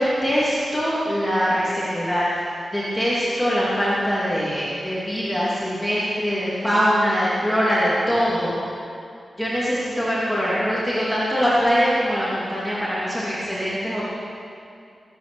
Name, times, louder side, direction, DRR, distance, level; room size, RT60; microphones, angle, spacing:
voice 1, 0.0-2.4 2.7-8.5 9.4-14.1, equal, ahead, -9 dB, 3.0 m, -22 dB
20.5 x 9.3 x 7.0 m, 2.4 s
wide cardioid pair, 160°, 0 cm